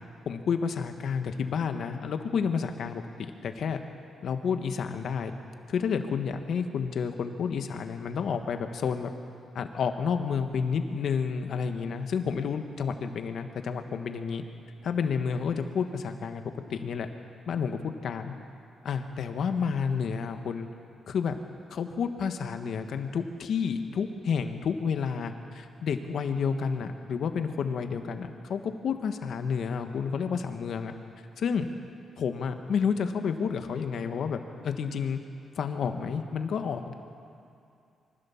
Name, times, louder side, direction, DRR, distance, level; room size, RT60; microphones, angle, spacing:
voice 1, 0.2-3.0 3.4-3.8 4.2-5.3 5.7-9.1 9.5-14.4 14.8-17.1 17.5-18.3 18.8-20.7 21.1-21.3 21.7-30.9 31.4-31.7 32.2-35.2 35.5-36.9, left 6 dB, 65° left, 7 dB, 1.4 m, -30 dB
24.0 x 15.0 x 7.2 m, 2.6 s
cardioid pair, 120°, 0 cm